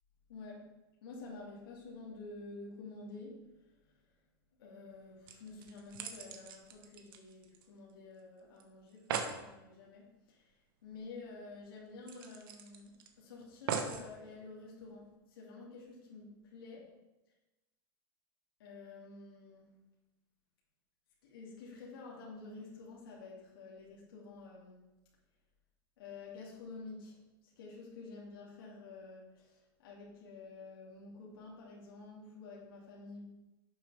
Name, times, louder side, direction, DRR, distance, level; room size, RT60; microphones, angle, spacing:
voice 1, 0.3-0.7 1.0-4.0 4.6-16.8 18.6-19.8 21.2-24.9 26.0-33.2, left 3 dB, 90° left, -4 dB, 2.4 m, -50 dB
sound 1, 4.9-5.0 5.3-7.9 8.2-8.3 8.6-8.7 8.9-9.4 10.9-11.0 11.3-11.4 12.1-13.1 13.7-14.1 14.8-14.9, right 6 dB, 75° right, 1.2 m, -40 dB
11.0 x 6.8 x 3.4 m, 1.0 s
supercardioid pair, 145°, 12 cm